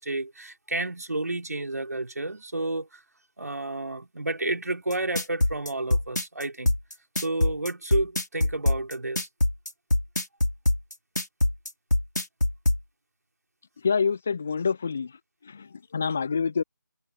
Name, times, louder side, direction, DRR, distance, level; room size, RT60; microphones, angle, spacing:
voice 1, 0.0-3.0 3.4-6.8 7.2-9.3, right 2 dB, 55° right, 4.5 m, -31 dB
sound 1, 4.9-12.8, left 1 dB, 65° left, 4.2 m, -23 dB
voice 2, 13.8-15.1 15.4-16.6, left 5 dB, 5° left, 0.4 m, -27 dB
figure-of-eight pair, 160°, 10 cm